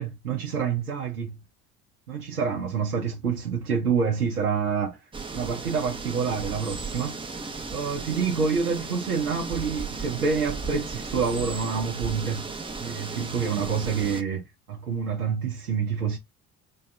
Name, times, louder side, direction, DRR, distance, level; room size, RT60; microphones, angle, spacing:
voice 1, 0.0-1.4 2.1-7.2 7.7-12.5 12.8-16.2, right 6 dB, 85° right, 0.7 m, -27 dB
sound 1, 5.1-14.2, right 4 dB, 10° right, 0.6 m, -35 dB
3.3 x 2.2 x 3.3 m
figure-of-eight pair, 55°, 44 cm